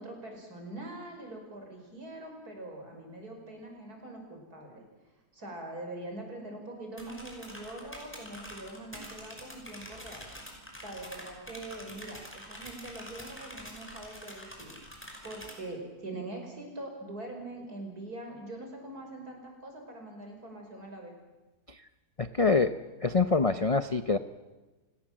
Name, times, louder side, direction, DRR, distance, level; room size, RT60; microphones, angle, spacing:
voice 1, 0.0-4.8 5.3-10.3 10.8-14.8 15.2-21.2, right 2 dB, 60° right, 3 dB, 6.0 m, -43 dB
sound 1, 7.0-15.5, equal, 5° left, 5.6 m, -46 dB
voice 2, 22.2-22.7 23.0-24.2, left 4 dB, 50° left, 11 dB, 0.4 m, -25 dB
29.0 x 17.0 x 7.5 m, 1.2 s
omnidirectional pair, 1.8 m